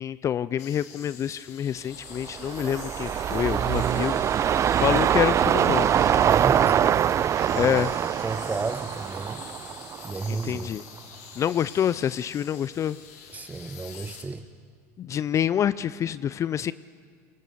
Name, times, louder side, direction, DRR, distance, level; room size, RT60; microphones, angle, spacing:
voice 1, 0.0-4.2 4.8-5.9 7.6-7.9 10.5-10.8 11.4-13.0 15.0-16.7, left 9 dB, 40° left, 17 dB, 0.5 m, -26 dB
sound 1, 0.6-14.2, left 7 dB, 85° left, 2.7 m, -46 dB
sound 2, 2.2-10.6 11.0-11.1, right 9 dB, 40° right, 0.5 m, -24 dB
voice 2, 6.2-7.0 7.5-9.4 10.0-10.8 13.3-14.5, right 3 dB, 20° right, 12 dB, 1.3 m, -33 dB
22.5 x 20.0 x 6.9 m, 2.1 s
supercardioid pair, 85°, 8 cm